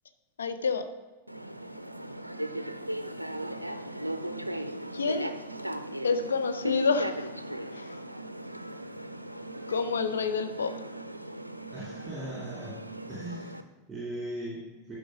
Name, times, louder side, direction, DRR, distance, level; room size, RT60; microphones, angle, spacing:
voice 1, 0.4-0.8 4.9-5.3 6.0-7.3 7.7-8.0 9.7-10.7, left 5 dB, 70° left, 9 dB, 0.6 m, -28 dB
sound 1, 1.3-13.6, right 1 dB, 85° right, 0.4 m, -37 dB
voice 2, 11.7-12.8 13.1-15.0, right 1 dB, 10° right, -6 dB, 2.9 m, -39 dB
11.5 x 5.0 x 4.8 m, 1.3 s
figure-of-eight pair, 90°, 0 cm